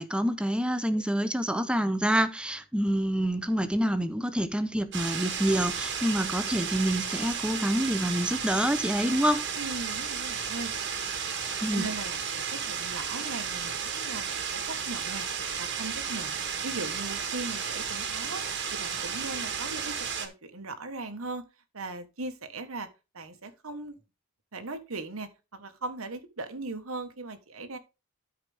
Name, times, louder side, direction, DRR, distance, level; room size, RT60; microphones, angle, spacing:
voice 1, 0.0-9.4 11.6-11.9, equal, 5° right, 0.7 m, -27 dB
sound 1, 4.9-20.3, right 7 dB, 55° right, 1.6 m, -33 dB
voice 2, 9.6-10.7 11.7-16.4 16.6-18.4 18.7-21.4 21.7-22.9 23.1-23.9 24.5-27.8, right 2 dB, 75° right, 1.4 m, -39 dB
13.0 x 5.0 x 3.5 m
head